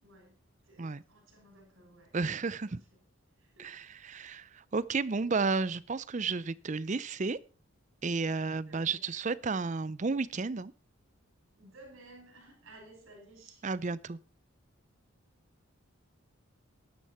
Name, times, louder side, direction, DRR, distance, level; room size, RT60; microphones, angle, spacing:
voice 1, 0.0-2.1 2.6-3.0 3.4-3.8 4.1-4.2 8.3-9.0 11.6-13.6, right 2 dB, 65° right, 6.2 m, -56 dB
voice 2, 2.1-2.8 3.6-7.4 8.0-10.7 13.6-14.2, right 4 dB, 35° right, 0.5 m, -32 dB
13.0 x 10.0 x 4.3 m
head